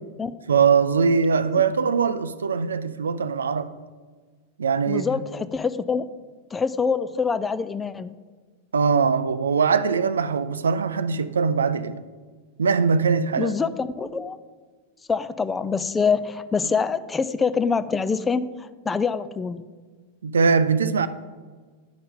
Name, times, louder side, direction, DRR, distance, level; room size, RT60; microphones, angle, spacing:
voice 1, 0.5-3.7 4.6-5.1 8.7-12.0 12.6-13.5 20.2-21.1, right 5 dB, 70° right, 0.4 m, -21 dB
voice 2, 4.9-6.1 6.5-8.1 13.4-14.4 15.1-19.6, left 5 dB, 15° left, 0.3 m, -25 dB
11.0 x 5.4 x 3.7 m
figure-of-eight pair, 90°, 0 cm